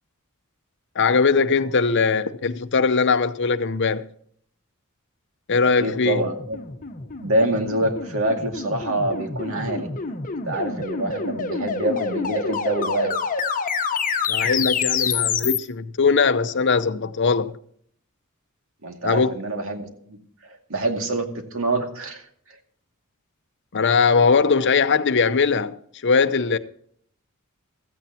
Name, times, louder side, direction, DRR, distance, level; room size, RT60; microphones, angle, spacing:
voice 1, 1.0-4.0 5.5-6.2 14.3-17.5 19.0-19.3 23.7-25.7 26.0-26.6, left 5 dB, 55° left, 0.8 m, -20 dB
voice 2, 5.6-6.6 7.2-9.9 10.4-13.1 18.8-22.2 22.5-22.6, right 1 dB, 65° right, 2.3 m, -26 dB
sound 1, 6.2-15.6, left 5 dB, 40° left, 1.1 m, -27 dB
16.0 x 14.5 x 2.9 m
head